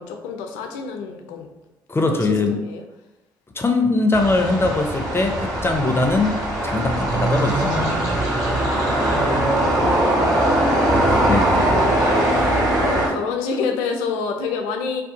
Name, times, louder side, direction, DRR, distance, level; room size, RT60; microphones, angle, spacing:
voice 1, 0.0-1.5 2.0-2.8 8.5-9.1 9.4-11.2 11.6-12.5 12.8-15.0, left 5 dB, 75° left, 4 dB, 0.4 m, -29 dB
voice 2, 1.9-2.6 3.6-6.4 6.6-7.7 11.2-11.6, left 3 dB, 20° left, 4 dB, 0.5 m, -21 dB
sound 1, 4.1-13.1, right 1 dB, 30° right, 1.5 m, -20 dB
2.6 x 2.3 x 3.7 m, 0.99 s
hypercardioid pair, 45°, 11 cm